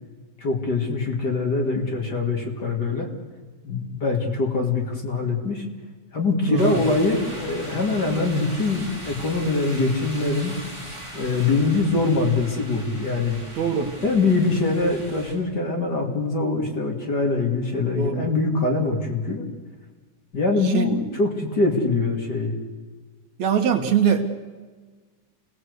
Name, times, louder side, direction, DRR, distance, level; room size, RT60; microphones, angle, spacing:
voice 1, 0.4-3.1 3.6-5.6 6.1-10.5 11.1-13.4 14.0-19.4 20.3-22.6, left 3 dB, 35° left, 2 dB, 2.9 m, -23 dB
voice 2, 6.5-6.8 13.6-13.9 17.9-18.3 20.6-20.9 23.4-24.3, right 7 dB, 70° right, 5 dB, 2.9 m, -22 dB
sound 1, 6.6-15.3, equal, 10° right, 6.9 m, -39 dB
28.0 x 18.5 x 8.2 m, 1.4 s
omnidirectional pair, 3.4 m